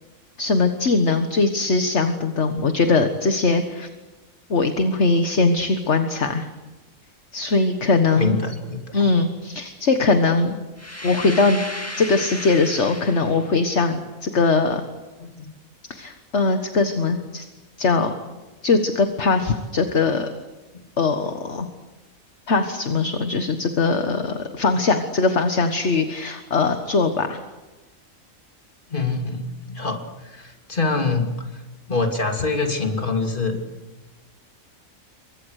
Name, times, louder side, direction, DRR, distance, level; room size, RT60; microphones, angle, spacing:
voice 1, 0.4-3.9 4.5-6.5 7.3-8.4 8.9-10.6 11.0-11.6 12.0-14.8 15.9-17.4 17.8-18.1 18.6-20.3 21.0-21.7 22.5-27.4, left 3 dB, 55° left, 7 dB, 1.8 m, -21 dB
voice 2, 8.2-9.0 15.2-15.5 28.9-31.6 31.9-33.6, left 3 dB, 35° left, 3 dB, 3.1 m, -25 dB
sound 1, 10.8-13.6, left 1 dB, 10° left, 2.2 m, -34 dB
28.5 x 24.0 x 6.6 m, 1.1 s
omnidirectional pair, 1.5 m